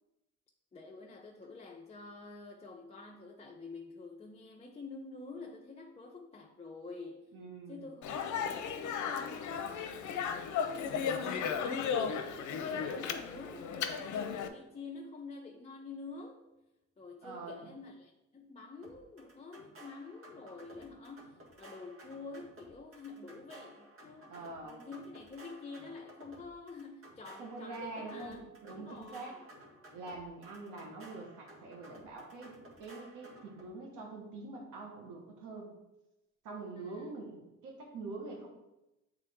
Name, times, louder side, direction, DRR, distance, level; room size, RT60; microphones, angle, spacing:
voice 1, 0.7-7.3 7.7-16.4 17.0-29.5 36.7-37.2, left 3 dB, 20° left, -1 dB, 0.6 m, -48 dB
voice 2, 7.3-7.8 12.7-13.0 17.2-17.7 24.3-24.8 27.4-29.4 29.9-35.7 36.4-38.5, right 3 dB, 85° right, 0 dB, 1.4 m, -45 dB
Speech, 8.0-14.5, left 7 dB, 75° left, 0.6 m, -35 dB
sound 1, 18.8-33.7, right 1 dB, 45° right, 1.7 m, -55 dB
8.2 x 3.6 x 3.5 m, 0.95 s
cardioid pair, 90°, 30 cm